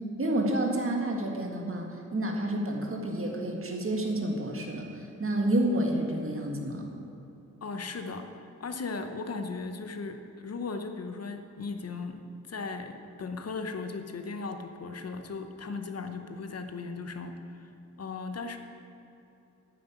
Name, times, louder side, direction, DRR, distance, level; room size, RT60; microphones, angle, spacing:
voice 1, 0.2-6.9, right 1 dB, 45° right, 1 dB, 1.8 m, -29 dB
voice 2, 7.6-17.7 18.0-18.6, left 4 dB, 55° left, 7 dB, 0.9 m, -37 dB
9.5 x 7.5 x 9.3 m, 2.9 s
wide cardioid pair, 145°, 30 cm